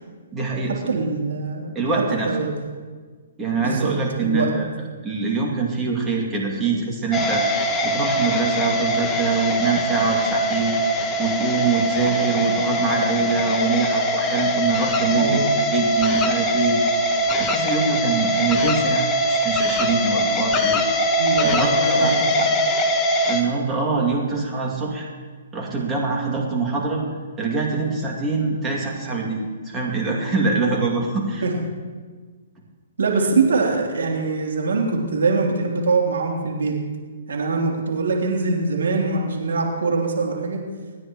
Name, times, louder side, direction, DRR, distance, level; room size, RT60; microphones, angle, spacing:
voice 1, 0.3-1.0 1.7-2.3 3.4-4.7 5.0-7.4 7.8-10.8 11.2-16.8 17.4-20.8 21.4-22.1 23.3-25.1 25.5-27.0 27.4-31.5, right 4 dB, 15° right, -2 dB, 2.5 m, -24 dB
voice 2, 0.9-1.8 2.2-2.5 3.6-3.9 4.2-4.5 15.1-15.5 21.2-22.5 31.4-31.5 33.0-36.7 37.3-40.6, right 4 dB, 85° right, 0 dB, 3.4 m, -23 dB
sound 1, 7.1-23.4, equal, 15° left, 1.2 m, -22 dB
27.0 x 9.9 x 3.1 m, 1.5 s
hypercardioid pair, 150°, 0 cm